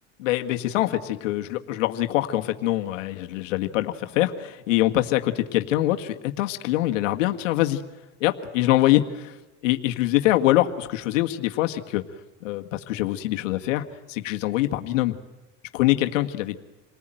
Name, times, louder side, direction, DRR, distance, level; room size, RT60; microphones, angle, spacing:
voice 1, 0.2-7.8 8.2-9.4 9.6-12.0 12.4-15.2 15.7-16.6, left 15 dB, 90° left, 5 dB, 1.9 m, -24 dB
28.0 x 19.5 x 9.2 m, 1.0 s
supercardioid pair, 130°, 37 cm